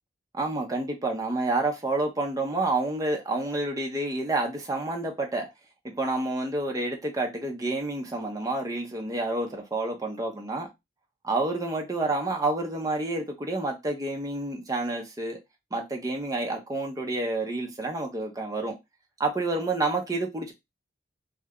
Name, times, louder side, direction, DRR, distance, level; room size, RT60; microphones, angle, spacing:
voice 1, 0.3-5.5 5.8-10.7 11.2-15.4 15.7-18.7 19.2-20.5, right 2 dB, 20° right, 0.5 m, -29 dB
2.3 x 2.0 x 3.5 m
head